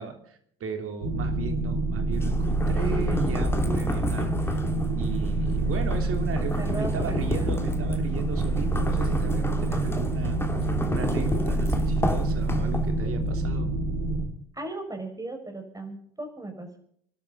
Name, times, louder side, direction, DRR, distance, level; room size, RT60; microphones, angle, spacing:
voice 1, 0.0-4.6 5.0-10.4 10.9-13.7, right 4 dB, 50° right, 6 dB, 3.6 m, -35 dB
sound 1, 1.0-14.2, right 2 dB, 80° right, 3.2 m, -27 dB
sound 2, 2.1-13.1, left 1 dB, 10° left, 3.0 m, -32 dB
voice 2, 6.6-7.6 14.5-16.8, right 2 dB, 10° right, 4 dB, 5.8 m, -36 dB
26.5 x 12.0 x 4.0 m, 0.63 s
hypercardioid pair, 65°, 30 cm